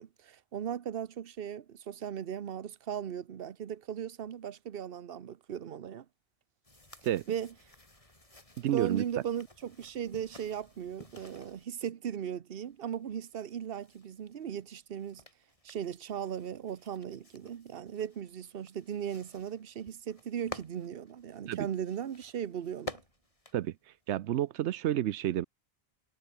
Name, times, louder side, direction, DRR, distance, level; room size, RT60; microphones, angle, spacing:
voice 1, 0.0-6.0 7.3-7.5 8.7-15.2 15.6-23.0, right 9 dB, 60° right, 1.1 m, -37 dB
sound 1, 6.6-11.6 12.6-24.5, left 1 dB, 30° left, 3.9 m, -52 dB
voice 2, 8.6-9.0 21.5-21.6 23.5-23.7 24.1-25.5, right 12 dB, 85° right, 0.9 m, -30 dB
omnidirectional pair, 1.1 m